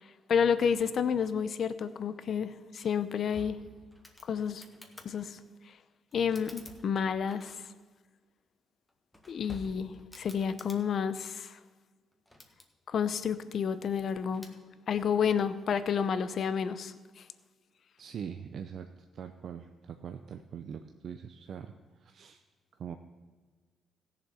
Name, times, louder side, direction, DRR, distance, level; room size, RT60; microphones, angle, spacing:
voice 1, 0.0-3.6 4.2-4.7 5.0-5.8 6.1-7.7 9.3-11.6 12.9-14.5 14.9-17.3, left 7 dB, 60° left, 13 dB, 0.7 m, -30 dB
sound 1, 2.8-5.1 6.1-7.8 8.9-10.8 12.1-12.7 14.3-14.6, left 1 dB, 10° left, 1.6 m, -51 dB
voice 2, 18.0-22.4 22.8-23.0, right 7 dB, 60° right, 7 dB, 0.6 m, -43 dB
16.0 x 7.2 x 5.6 m, 1.4 s
cardioid pair, 90°, 0 cm